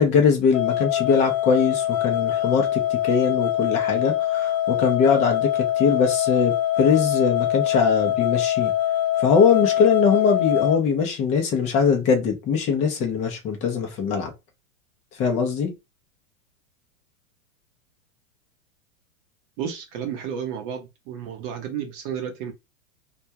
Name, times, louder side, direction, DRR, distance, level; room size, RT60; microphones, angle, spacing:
voice 1, 0.0-8.7 9.2-14.3 15.2-15.7, left 6 dB, 20° left, 0.5 m, -21 dB
sound 1, 0.5-10.8, left 12 dB, 55° left, 1.1 m, -23 dB
voice 2, 19.6-22.5, right 8 dB, 35° right, 0.7 m, -32 dB
2.3 x 2.1 x 2.7 m
supercardioid pair, 145°, 42 cm